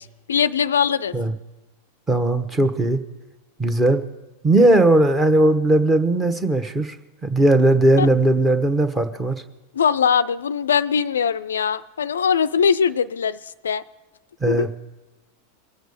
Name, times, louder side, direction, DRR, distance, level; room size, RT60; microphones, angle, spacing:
voice 1, 0.0-1.1 8.0-8.1 9.7-13.8 14.5-14.7, left 7 dB, 65° left, 16 dB, 0.4 m, -21 dB
voice 2, 2.1-3.0 3.6-4.0 4.4-7.0 7.2-9.4 14.4-14.8, right 2 dB, 15° right, 10 dB, 1.1 m, -18 dB
21.5 x 8.0 x 5.0 m, 1.1 s
figure-of-eight pair, 90°, 0 cm